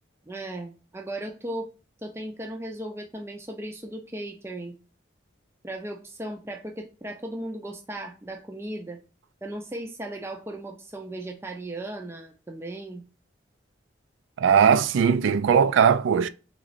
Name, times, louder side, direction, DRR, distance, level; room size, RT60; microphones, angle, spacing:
voice 1, 0.3-1.7 2.0-4.7 5.6-9.0 9.4-13.0, right 1 dB, 15° right, 0.4 m, -36 dB
voice 2, 14.4-16.3, right 7 dB, 80° right, 0.3 m, -19 dB
3.7 x 3.1 x 2.5 m
head